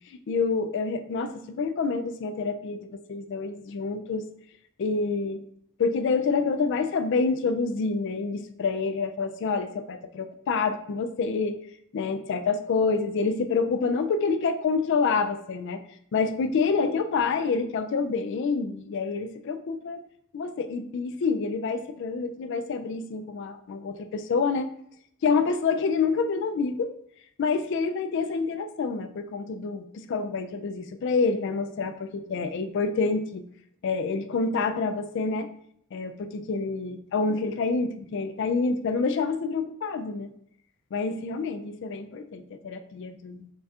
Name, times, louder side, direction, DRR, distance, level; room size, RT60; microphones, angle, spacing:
voice 1, 0.3-4.3 4.8-5.4 5.8-11.6 11.9-15.8 16.1-20.0 20.3-24.7 25.2-26.9 27.4-33.4 33.8-35.5 35.9-40.3 40.9-43.5, left 4 dB, 55° left, 9 dB, 0.3 m, -27 dB
5.4 x 2.8 x 2.3 m, 0.69 s
head